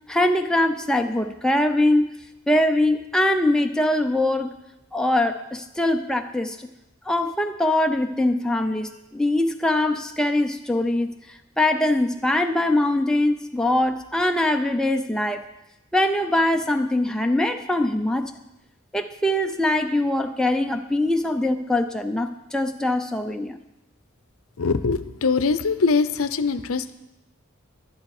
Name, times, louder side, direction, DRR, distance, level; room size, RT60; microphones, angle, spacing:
voice 1, 0.1-2.1 2.5-4.5 4.9-6.6 7.1-11.1 11.6-15.4 15.9-18.3 18.9-23.6, left 1 dB, 5° left, 4 dB, 0.5 m, -22 dB
voice 2, 24.6-26.9, left 4 dB, 80° left, 12 dB, 0.6 m, -22 dB
11.5 x 11.0 x 4.8 m, 0.90 s
head